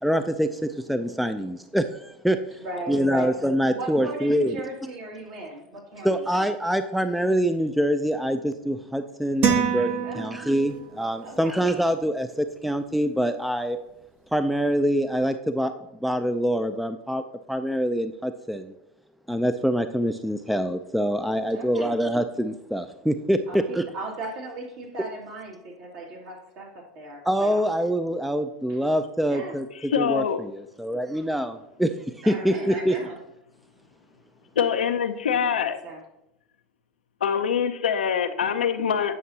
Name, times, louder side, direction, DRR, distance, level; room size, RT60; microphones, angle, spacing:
voice 1, 0.0-4.6 6.0-13.8 14.3-15.7 16.0-17.2 17.5-18.7 19.3-23.9 27.3-32.0 32.3-33.0, equal, ahead, 9 dB, 0.4 m, -25 dB
voice 2, 2.6-3.3 3.7-6.2 10.0-10.3 11.2-11.6 21.5-21.9 23.5-27.9 28.7-28.8 29.2-29.6 32.2-33.2 35.8-36.0, right 2 dB, 60° right, 0 dB, 2.3 m, -37 dB
sound 1, 9.4-10.9, right 7 dB, 45° right, 1.2 m, -25 dB
voice 3, 29.9-30.4 34.6-35.8 37.2-39.2, left 7 dB, 90° left, 8 dB, 0.6 m, -24 dB
9.2 x 5.8 x 2.8 m, 0.85 s
hypercardioid pair, 90°, 5 cm